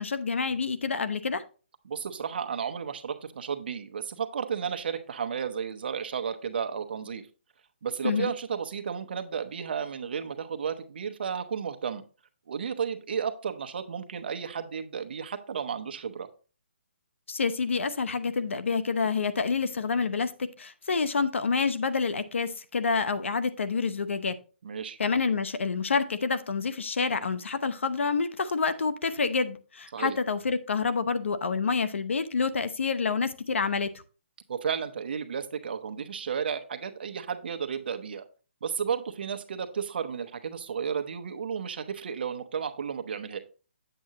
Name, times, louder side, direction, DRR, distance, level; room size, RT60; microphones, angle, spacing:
voice 1, 0.0-1.4 8.0-8.3 17.3-24.4 25.0-33.9, left 5 dB, 85° left, 12 dB, 0.8 m, -28 dB
voice 2, 1.8-7.2 7.8-12.0 12.5-16.3 24.6-25.0 29.9-30.2 34.5-38.3 38.6-43.4, right 7 dB, 55° right, 8 dB, 0.9 m, -33 dB
7.9 x 7.5 x 2.9 m, 0.36 s
hypercardioid pair, 165°, 6 cm